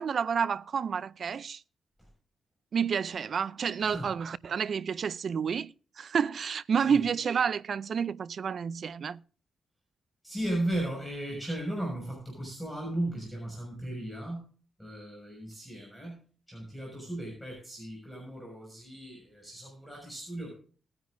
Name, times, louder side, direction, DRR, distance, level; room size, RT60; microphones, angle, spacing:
voice 1, 0.0-1.6 2.7-9.2, right 7 dB, 55° right, 0.4 m, -30 dB
voice 2, 10.2-14.5 14.8-16.2 16.5-20.5, right 1 dB, 5° left, 6.0 m, -36 dB
20.0 x 9.7 x 2.6 m
cardioid pair, 110°, 0 cm